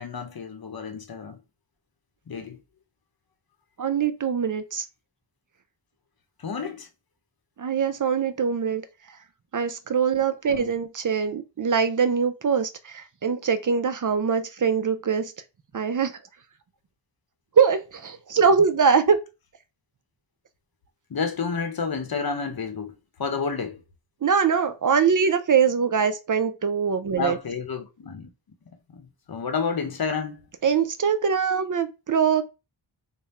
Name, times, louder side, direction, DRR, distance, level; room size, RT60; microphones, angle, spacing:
voice 1, 0.0-1.4 2.3-2.6 6.4-6.9 10.5-10.7 21.1-23.8 27.2-28.3 28.9-30.4, left 5 dB, 50° left, 0.8 m, -30 dB
voice 2, 3.8-4.9 7.6-8.8 9.5-15.3 15.7-16.1 17.6-19.2 24.2-27.4 30.6-32.4, right 6 dB, 45° right, 0.5 m, -23 dB
3.5 x 2.2 x 4.1 m
wide cardioid pair, 115°, 45 cm